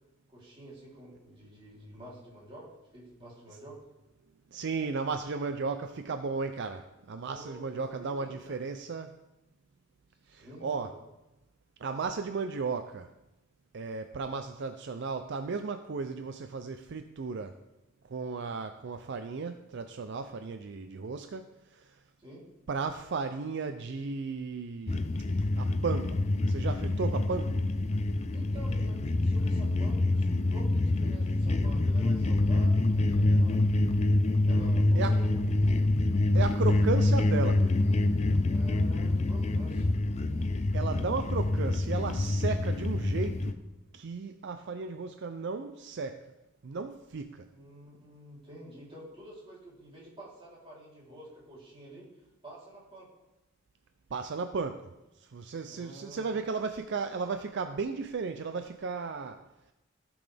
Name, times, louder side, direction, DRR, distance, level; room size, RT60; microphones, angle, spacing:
voice 1, 0.3-3.8 7.2-7.7 8.0-8.6 10.2-10.9 22.2-22.5 28.3-33.6 34.4-35.6 38.5-40.0 47.5-52.1 52.4-53.1 55.7-56.4, right 1 dB, 25° right, -6 dB, 3.4 m, -49 dB
voice 2, 4.5-9.1 10.3-10.9 11.8-13.1 13.7-17.6 18.1-21.9 22.7-25.0 25.6-27.6 35.0-35.1 36.3-37.8 40.7-43.6 43.9-46.2 46.6-47.5 54.1-54.9 55.3-59.4, right 4 dB, 60° right, 8 dB, 0.5 m, -35 dB
sound 1, 24.9-43.5, left 2 dB, 35° left, 0.5 m, -26 dB
16.0 x 6.1 x 3.4 m, 0.98 s
head